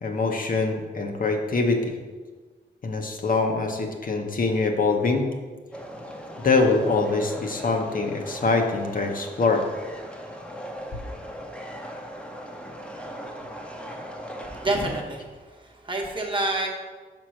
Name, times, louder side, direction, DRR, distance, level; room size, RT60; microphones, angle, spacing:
voice 1, 0.0-1.9 2.8-5.3 6.4-9.6, left 3 dB, 50° left, 3 dB, 0.7 m, -24 dB
sound 1, 5.7-15.0, equal, 5° left, 0.7 m, -38 dB
voice 2, 14.5-16.7, right 2 dB, 25° right, 0 dB, 1.0 m, -28 dB
5.3 x 4.5 x 6.1 m, 1.4 s
wide cardioid pair, 155°, 19 cm